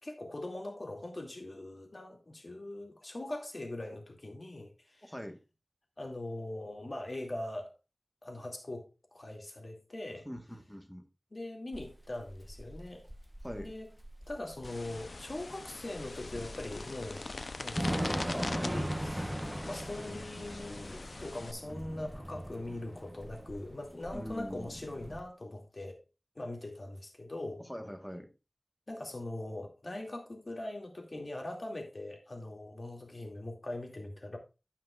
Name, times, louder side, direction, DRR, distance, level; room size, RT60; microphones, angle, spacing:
voice 1, 0.0-5.1 6.0-7.7 8.2-10.3 11.3-13.0 13.6-13.9 14.3-17.3 17.6-19.4 19.7-26.0 26.4-27.6 28.9-34.4, left 1 dB, 60° left, 2.4 m, -41 dB
voice 2, 5.0-5.4 10.2-11.0 13.4-13.7 24.1-24.7 27.7-28.3, equal, 5° left, 1.4 m, -42 dB
Thunder / Rain, 11.7-25.2, equal, 10° right, 1.0 m, -40 dB
sound 1, 14.6-21.5, left 3 dB, 90° left, 0.6 m, -42 dB
15.0 x 5.8 x 2.4 m
wide cardioid pair, 50°, 0 cm